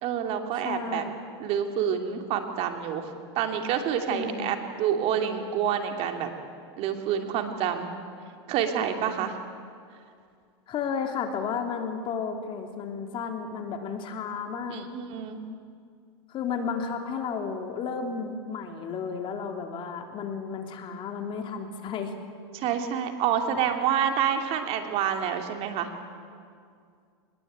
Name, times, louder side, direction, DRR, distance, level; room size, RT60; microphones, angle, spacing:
voice 1, 0.0-1.0 1.4-6.3 6.8-7.9 8.5-9.4 14.7-15.4 22.5-25.9, right 8 dB, 50° right, 5 dB, 2.8 m, -28 dB
voice 2, 0.6-1.1 4.1-4.6 10.7-14.9 16.3-22.1, left 6 dB, 40° left, 4 dB, 3.2 m, -33 dB
24.0 x 21.0 x 9.0 m, 2.2 s
supercardioid pair, 120°, 14 cm